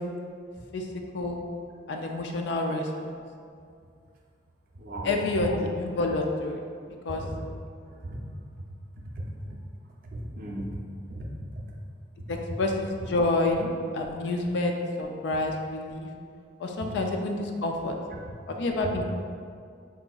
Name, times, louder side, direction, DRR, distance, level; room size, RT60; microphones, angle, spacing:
voice 1, 1.9-2.9 5.0-6.6 7.0-7.2 12.3-16.1 16.6-17.9 18.5-19.1, left 2 dB, 65° left, 2 dB, 0.3 m, -28 dB
voice 2, 9.2-9.6 10.1-10.8 11.1-11.2 12.3-12.4 18.8-19.0, right 1 dB, 45° right, -2 dB, 0.4 m, -36 dB
3.8 x 2.6 x 2.3 m, 2.3 s
head